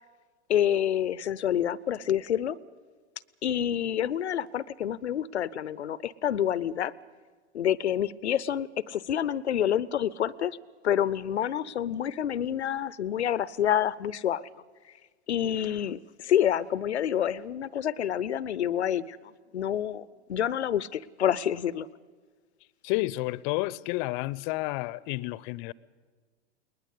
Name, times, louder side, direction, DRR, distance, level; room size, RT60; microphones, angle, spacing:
voice 1, 0.5-2.6 3.4-6.9 7.5-10.6 10.8-14.5 15.3-21.9, left 10 dB, 85° left, 0.7 m, -28 dB
voice 2, 22.8-25.7, left 20 dB, 50° left, 0.7 m, -30 dB
20.5 x 20.5 x 8.3 m
hypercardioid pair, 95°, 33 cm